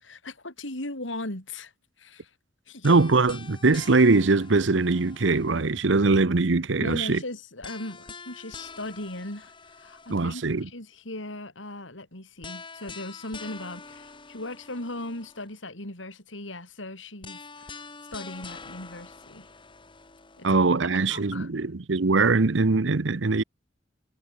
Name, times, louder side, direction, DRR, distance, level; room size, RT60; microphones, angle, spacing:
voice 1, 0.0-1.7 2.0-2.3 2.7-3.0 6.8-17.8 18.1-19.5 20.4-20.6 21.1-21.5, left 1 dB, 85° left, 6.8 m, -38 dB
sound 1, 2.8-6.0 7.6-10.6 12.4-15.6 17.2-20.7, left 4 dB, 25° left, 2.1 m, -45 dB
voice 2, 2.8-7.2 10.1-10.7 20.4-23.4, right 3 dB, 70° right, 0.9 m, -22 dB
head